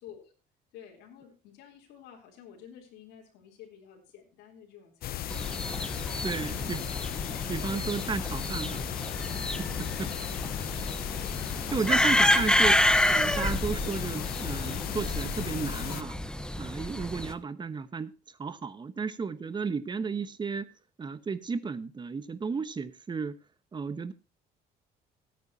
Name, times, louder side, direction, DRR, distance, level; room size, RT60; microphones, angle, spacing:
voice 1, 0.0-0.3 0.7-5.8 6.4-6.8 7.2-8.2 9.8-10.5, left 8 dB, 85° left, 3.7 m, -51 dB
sound 1, 5.0-16.0, left 13 dB, 65° left, 0.6 m, -36 dB
sound 2, 5.3-17.3, left 1 dB, 5° left, 1.0 m, -29 dB
voice 2, 6.2-6.8 7.5-8.8 9.6-10.1 11.7-16.2 16.6-18.1 18.4-20.7 21.0-23.3 23.7-24.1, right 5 dB, 25° right, 1.2 m, -33 dB
19.0 x 9.2 x 2.8 m
cardioid pair, 110°, 17 cm